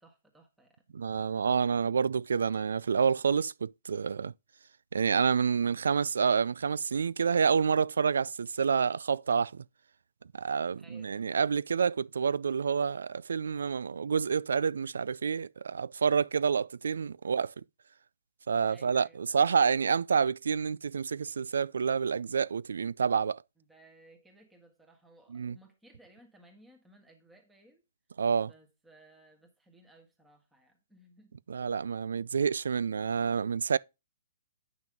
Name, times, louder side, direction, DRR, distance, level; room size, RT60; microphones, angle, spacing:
voice 1, 0.0-0.8 10.7-11.2 18.6-19.5 23.6-27.8 28.4-31.4, right 1 dB, 5° right, 1.6 m, -59 dB
voice 2, 0.9-4.3 4.9-9.6 10.3-17.5 18.5-23.4 25.3-25.6 28.2-28.5 31.5-33.8, right 6 dB, 85° right, 0.4 m, -28 dB
9.0 x 6.0 x 3.5 m
hypercardioid pair, 160°, 0 cm